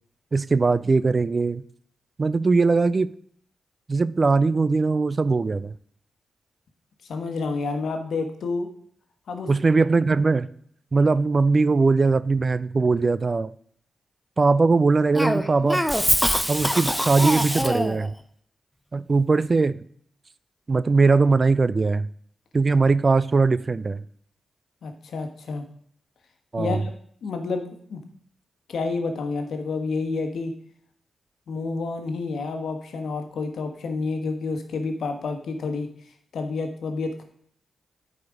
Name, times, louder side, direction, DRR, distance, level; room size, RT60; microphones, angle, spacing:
voice 1, 0.3-1.6 2.2-3.1 3.9-5.7 9.5-10.5 10.9-13.5 14.4-15.8 16.5-18.1 18.9-19.8 20.7-22.1 22.5-24.0 26.5-26.8, right 4 dB, 45° right, 0.4 m, -20 dB
voice 2, 7.1-8.7 9.3-9.5 24.8-25.6 26.6-26.9 27.2-28.0 28.7-30.5 31.5-35.9 36.3-37.2, left 4 dB, 75° left, 1.3 m, -29 dB
Cough, 15.2-18.1, equal, ahead, 0.9 m, -23 dB
9.6 x 5.0 x 4.8 m
supercardioid pair, 45°, 0 cm